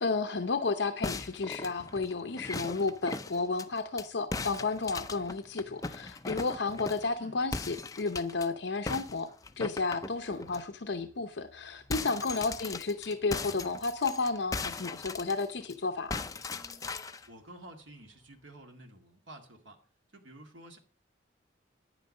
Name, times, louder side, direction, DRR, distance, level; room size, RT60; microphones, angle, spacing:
voice 1, 0.0-9.3 9.6-16.2, left 4 dB, 65° left, 0.7 m, -32 dB
sound 1, 1.0-4.1 4.3-7.1 7.5-8.5 8.9-10.6 11.0-11.2 11.5-15.7 16.1-17.3, left 3 dB, 20° left, 0.5 m, -39 dB
voice 2, 12.3-12.6 17.3-19.8 20.1-20.8, right 1 dB, 85° right, 2.1 m, -51 dB
10.0 x 9.2 x 5.4 m
head